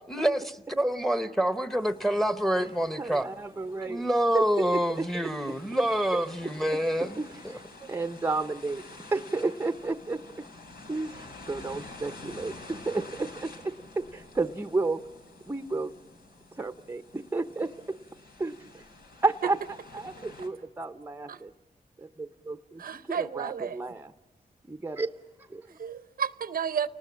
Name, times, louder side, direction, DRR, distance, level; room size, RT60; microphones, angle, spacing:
voice 1, 0.0-3.3 3.8-7.2, equal, ahead, 1.1 m, -27 dB
sound 1, 1.8-20.5, left 2 dB, 85° left, 3.6 m, -49 dB
voice 2, 3.0-4.1 4.3-5.6 6.4-8.8 9.1-10.5 10.9-15.0 15.4-15.9 16.5-18.0 18.4-18.8 19.2-19.6 19.9-21.5 22.0-24.1 24.7-25.1 25.4-25.8, right 3 dB, 15° right, 0.7 m, -32 dB
voice 3, 22.8-23.8 25.8-26.9, right 7 dB, 70° right, 0.7 m, -32 dB
29.5 x 19.5 x 7.5 m
wide cardioid pair, 120°, 16 cm